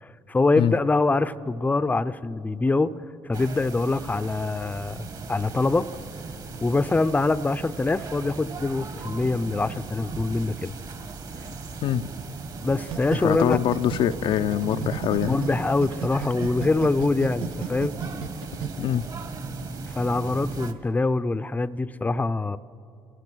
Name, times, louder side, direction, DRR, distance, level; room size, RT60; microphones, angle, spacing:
voice 1, 0.0-2.9 3.2-5.9 6.6-10.7 12.6-13.6 15.3-17.9 19.9-22.6, left 3 dB, 15° left, 15 dB, 0.6 m, -24 dB
sound 1, 3.3-20.7, right 4 dB, 45° right, 2.1 m, -37 dB
sound 2, 12.9-15.5 15.8-18.7, right 11 dB, 70° right, 1.0 m, -32 dB
voice 2, 13.1-15.4 18.8-19.1, left 10 dB, 65° left, 10 dB, 0.6 m, -24 dB
29.0 x 17.5 x 6.3 m, 2.6 s
supercardioid pair, 75°, 9 cm